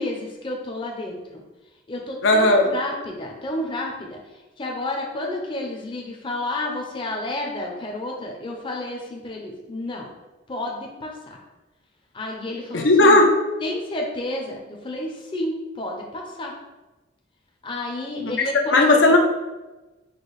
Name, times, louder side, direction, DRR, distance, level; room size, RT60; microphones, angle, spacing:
voice 1, 0.0-1.4 1.9-4.2 4.6-10.1 10.5-11.4 12.1-13.2 13.6-16.5 17.6-19.2, left 1 dB, 25° left, 0 dB, 0.6 m, -31 dB
voice 2, 2.2-2.7 12.7-13.3 18.2-18.3 18.7-19.2, left 2 dB, 75° left, 2 dB, 0.6 m, -15 dB
4.9 x 2.2 x 4.0 m, 1.1 s
head